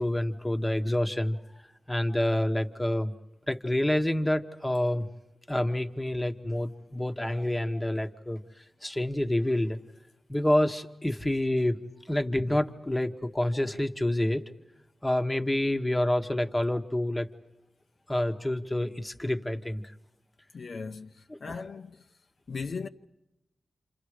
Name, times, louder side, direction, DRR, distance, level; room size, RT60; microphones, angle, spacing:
voice 1, 0.0-1.4 1.9-3.1 3.5-5.1 5.5-8.4 8.8-9.8 10.3-11.8 12.1-14.4 15.0-17.3 18.1-19.8 21.3-21.4, left 1 dB, 10° left, 1.3 m, -27 dB
voice 2, 20.5-22.0 22.5-22.9, left 4 dB, 60° left, 0.8 m, -38 dB
29.0 x 28.0 x 5.0 m
wide cardioid pair, 110°, 0 cm